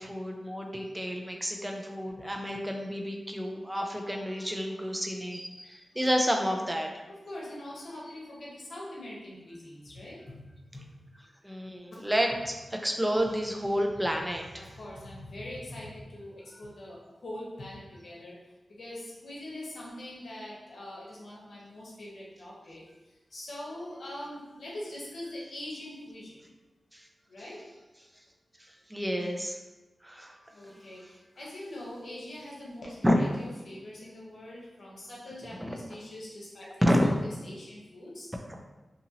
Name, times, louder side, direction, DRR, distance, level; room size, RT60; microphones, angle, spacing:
voice 1, 0.0-6.9 11.4-14.7 26.9-27.0 28.6-29.6 30.0-30.3 30.7-30.8 33.0-33.2 35.6-35.8 36.8-37.1, equal, 10° right, 2 dB, 0.4 m, -30 dB
voice 2, 4.0-4.8 5.9-6.1 7.1-10.3 10.7-10.9 14.6-18.3 18.7-22.8 23.3-26.4 27.3-27.6 30.5-36.7 37.0-38.3, left 1 dB, 75° left, -5 dB, 0.9 m, -43 dB
2.8 x 2.6 x 2.8 m, 1.1 s
wide cardioid pair, 85°, 0 cm